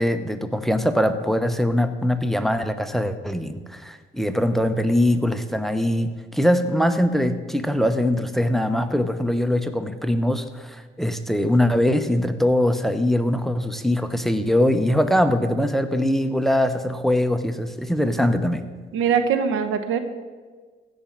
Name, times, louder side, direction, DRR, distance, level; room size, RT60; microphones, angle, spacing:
voice 1, 0.0-18.7, left 1 dB, ahead, 10 dB, 0.8 m, -22 dB
voice 2, 18.9-20.0, right 7 dB, 85° right, 9 dB, 1.0 m, -22 dB
15.0 x 5.3 x 7.3 m, 1.5 s
cardioid pair, 90°, 20 cm